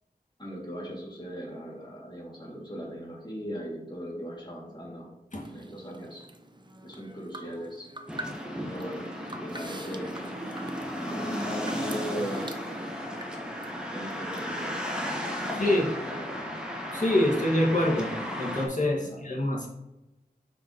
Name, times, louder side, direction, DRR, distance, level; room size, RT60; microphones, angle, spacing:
voice 1, 0.4-5.1 5.5-6.3 6.8-7.9 8.6-10.1 11.1-12.5 13.9-14.8 15.4-16.6 19.0-19.2, equal, 25° left, -4 dB, 2.4 m, -38 dB
sound 1, 5.4-14.7, right 1 dB, 25° right, 0.6 m, -46 dB
sound 2, 8.1-18.7, equal, 5° right, 1.4 m, -34 dB
voice 2, 15.5-15.9 16.9-19.7, left 1 dB, 50° left, -3 dB, 1.9 m, -26 dB
6.4 x 5.8 x 3.0 m, 0.95 s
wide cardioid pair, 50°, 17 cm